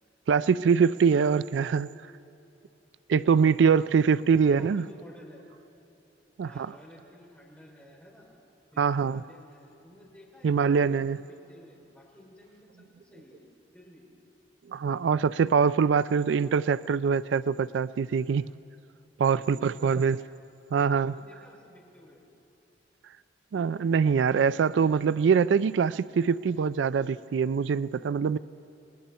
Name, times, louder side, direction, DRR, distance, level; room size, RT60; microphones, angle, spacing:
voice 1, 0.3-1.9 3.1-4.8 6.4-6.7 8.8-9.2 10.4-11.2 14.7-18.5 19.2-20.2 20.7-21.1 23.5-28.4, right 6 dB, 85° right, 17 dB, 0.4 m, -23 dB
voice 2, 4.3-5.4 6.4-8.3 8.7-13.4 13.7-14.1 19.3-20.2 20.7-22.2, left 1 dB, 10° left, -5 dB, 5.0 m, -53 dB
29.5 x 21.0 x 4.3 m, 2.8 s
head